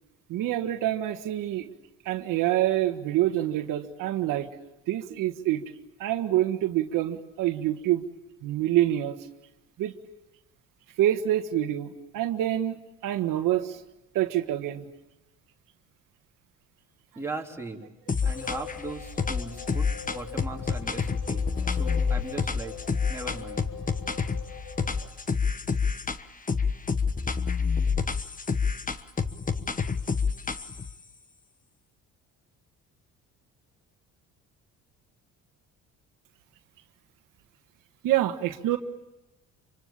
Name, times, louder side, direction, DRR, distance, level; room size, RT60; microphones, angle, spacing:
voice 1, 0.3-1.7 2.0-4.5 4.9-5.6 6.0-8.0 8.4-9.2 9.8-9.9 11.0-12.8 13.0-13.8 14.1-14.8 18.2-18.3 38.0-38.8, right 13 dB, 80° right, 6 dB, 1.6 m, -26 dB
voice 2, 17.2-17.9 18.2-22.8 23.1-23.7, right 2 dB, 10° right, 0 dB, 3.5 m, -38 dB
sound 1, 18.1-18.8 19.2-24.4 24.8-26.2 26.5-30.9, left 5 dB, 25° left, 1.3 m, -28 dB
sound 2, 18.2-25.1, left 5 dB, 80° left, 4.3 m, -41 dB
26.0 x 24.5 x 8.8 m, 0.99 s
cardioid pair, 90°, 32 cm